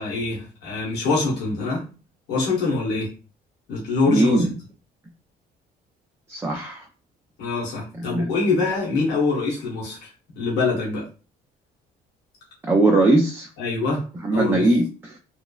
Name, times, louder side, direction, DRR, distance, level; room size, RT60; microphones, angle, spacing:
voice 1, 0.0-1.8 2.3-3.1 3.7-4.4 7.4-10.1 10.3-11.1 13.6-14.1 14.3-14.7, left 3 dB, 90° left, -5 dB, 1.1 m, -24 dB
voice 2, 4.1-4.5 6.3-6.9 7.9-8.3 12.6-13.5 14.2-14.9, right 2 dB, 15° right, 0 dB, 0.4 m, -20 dB
3.0 x 2.1 x 2.3 m, 0.35 s
cardioid pair, 110°, 17 cm